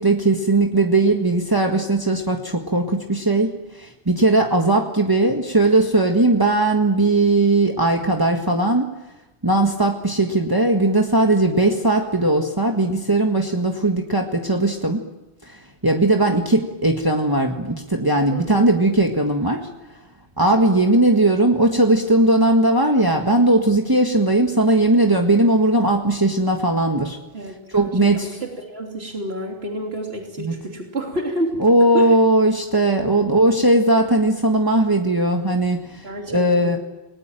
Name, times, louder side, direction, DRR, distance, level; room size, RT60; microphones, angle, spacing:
voice 1, 0.0-8.9 9.4-15.0 15.4-19.7 20.4-27.2 27.7-28.3 30.4-30.5 31.6-36.8, right 2 dB, 20° right, 2 dB, 1.7 m, -18 dB
voice 2, 18.3-18.7 27.3-31.6 31.9-32.2 36.0-36.8, right 1 dB, 80° right, 1 dB, 3.5 m, -30 dB
29.5 x 20.5 x 9.2 m, 1.0 s
omnidirectional pair, 1.0 m